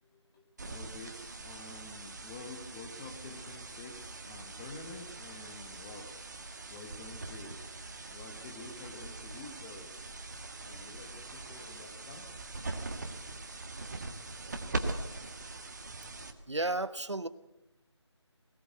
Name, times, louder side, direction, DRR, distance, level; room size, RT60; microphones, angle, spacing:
voice 1, 0.0-6.1 6.7-7.6 8.1-9.9 10.6-12.3, left 3 dB, 10° left, 2 dB, 1.0 m, -49 dB
sound 1, 0.6-16.6, right 3 dB, 35° right, 1.7 m, -42 dB
voice 2, 16.5-17.3, right 2 dB, 70° right, 14 dB, 1.2 m, -32 dB
21.0 x 17.5 x 8.1 m, 0.92 s
figure-of-eight pair, 160°, 15 cm